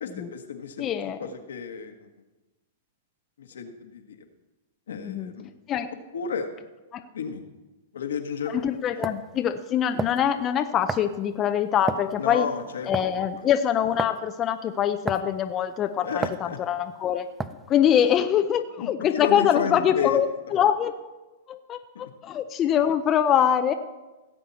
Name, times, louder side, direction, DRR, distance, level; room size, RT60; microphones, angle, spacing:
voice 1, 0.0-0.9 1.2-2.1 3.4-4.2 4.9-5.5 6.1-6.5 7.1-7.4 7.9-8.6 9.0-9.1 12.2-12.9 16.0-16.6 18.8-20.2 20.5-20.6, left 6 dB, 85° left, 5 dB, 1.5 m, -32 dB
voice 2, 0.8-1.2 5.0-5.3 5.7-5.9 6.9-7.0 8.4-12.5 12.9-16.2 16.7-17.3 17.7-20.3 20.5-20.9 21.5-23.7, left 9 dB, 30° left, 8 dB, 0.6 m, -24 dB
sound 1, 8.3-8.4 9.0-9.2 10.0-10.3 10.9-11.2 11.9-12.1 12.9-13.2 14.0-14.2 15.1-15.4 16.2-16.4 17.4-17.7, right 4 dB, 15° right, 0.5 m, -30 dB
17.0 x 7.9 x 4.2 m, 1.1 s
hypercardioid pair, 130°, 0 cm